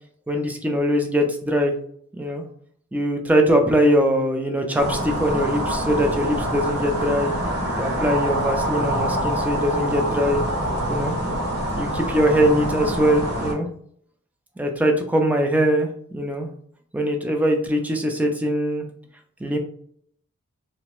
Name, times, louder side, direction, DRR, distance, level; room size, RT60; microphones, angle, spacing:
voice 1, 0.3-1.7 2.1-2.4 2.9-7.3 7.7-10.4 10.9-11.1 11.8-13.7 14.6-16.5 16.9-18.9 19.4-19.6, equal, 5° right, 4 dB, 0.3 m, -22 dB
sound 1, 4.7-13.5, equal, 65° right, 0.7 m, -25 dB
2.9 x 2.1 x 2.9 m, 0.63 s
head